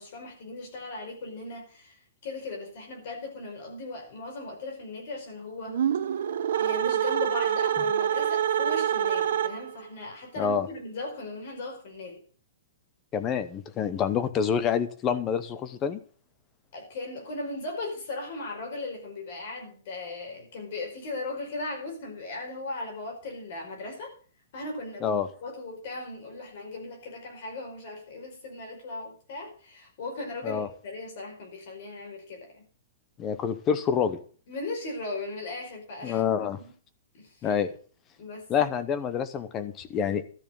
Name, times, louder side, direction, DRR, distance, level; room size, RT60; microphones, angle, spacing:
voice 1, 0.0-5.8 6.5-12.2 16.7-24.1 24.5-32.6 34.5-36.7 37.1-37.6 38.2-38.5, left 2 dB, 40° left, 1 dB, 5.1 m, -38 dB
sound 1, 5.7-9.9, right 9 dB, 55° right, 0.9 m, -26 dB
voice 2, 10.4-10.7 13.1-16.0 25.0-25.3 30.4-30.7 33.2-34.2 36.0-36.6 37.4-37.7 38.5-40.2, left 7 dB, 15° left, 12 dB, 0.7 m, -27 dB
12.5 x 7.0 x 7.8 m, 0.42 s
hypercardioid pair, 180°, 0 cm